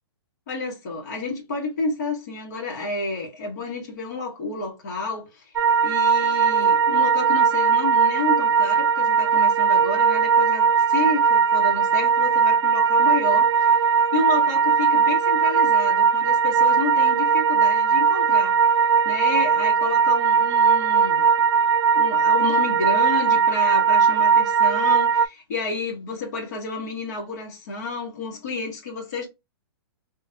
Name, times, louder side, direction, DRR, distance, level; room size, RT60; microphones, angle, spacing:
voice 1, 0.5-21.3 21.9-29.3, left 3 dB, 40° left, 1.3 m, -30 dB
sound 1, 5.6-25.3, right 6 dB, 90° right, 0.5 m, -19 dB
4.1 x 2.6 x 2.2 m
hypercardioid pair, 180°, 13 cm